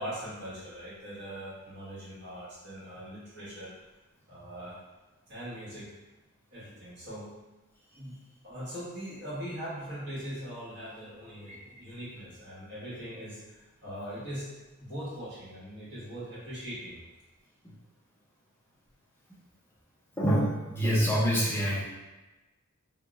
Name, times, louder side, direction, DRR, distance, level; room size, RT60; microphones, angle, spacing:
voice 1, 0.0-3.7 4.3-4.8 5.3-5.9 6.5-7.3 7.9-8.2 8.4-14.5 14.8-17.0, equal, 55° right, -9 dB, 1.4 m, -41 dB
voice 2, 20.2-21.8, equal, 10° left, -8 dB, 0.5 m, -26 dB
2.8 x 2.0 x 3.4 m, 1.1 s
head